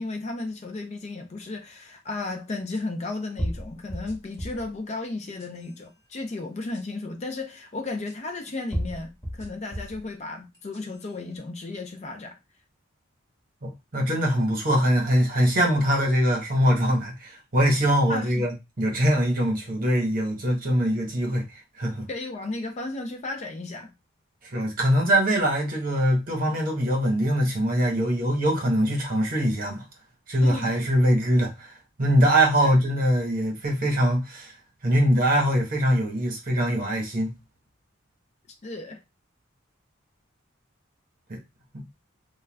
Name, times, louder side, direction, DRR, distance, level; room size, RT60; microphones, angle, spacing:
voice 1, 0.0-12.4 18.1-18.4 22.1-23.9 30.4-30.8 32.6-32.7 38.6-39.0, left 2 dB, 35° left, 0.4 m, -34 dB
sound 1, 1.4-1.5 2.7-2.8 3.4-4.7 5.2-5.8 6.7-6.8 8.1-8.2 8.7-10.0 10.5-11.1, equal, 15° left, 0.9 m, -33 dB
voice 2, 13.6-21.4 21.8-22.1 24.5-29.8 30.3-31.5 32.0-34.5 34.8-37.3 41.3-41.4 41.7-41.8, equal, 45° right, 1.0 m, -22 dB
2.3 x 2.2 x 3.2 m
head